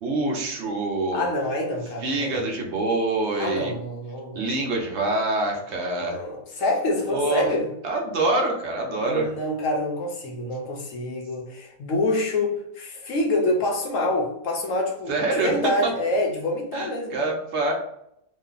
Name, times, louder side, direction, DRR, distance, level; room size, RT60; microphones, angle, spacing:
voice 1, 0.0-1.2 2.0-3.7 4.3-6.2 7.1-7.5 7.8-9.3 15.1-15.5 15.8-15.9 16.7-17.7, right 2 dB, 55° right, 0 dB, 0.9 m, -25 dB
voice 2, 1.1-2.4 3.4-4.7 5.9-7.7 9.0-15.1 15.4-17.1, left 1 dB, 60° left, 0 dB, 1.0 m, -26 dB
3.2 x 2.2 x 3.8 m, 0.76 s
omnidirectional pair, 1.7 m